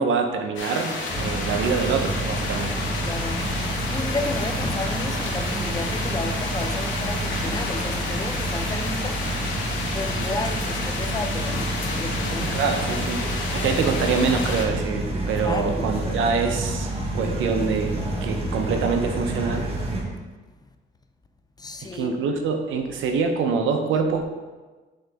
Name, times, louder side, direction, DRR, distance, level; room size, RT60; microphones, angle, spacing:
voice 1, 0.0-2.7 12.4-13.2 13.5-16.9 17.1-19.7 21.9-24.2, right 5 dB, 85° right, 0.8 m, -25 dB
sound 1, 0.6-14.7, left 3 dB, 75° left, 1.2 m, -31 dB
sound 2, 1.1-20.0, right 1 dB, 30° right, 1.3 m, -29 dB
voice 2, 2.8-9.2 9.9-12.6 15.4-16.0 21.6-22.2, left 2 dB, 20° left, 0.5 m, -33 dB
Stream, 3.2-9.2, equal, 5° left, 1.3 m, -40 dB
8.7 x 3.8 x 3.5 m
cardioid pair, 110°, 20 cm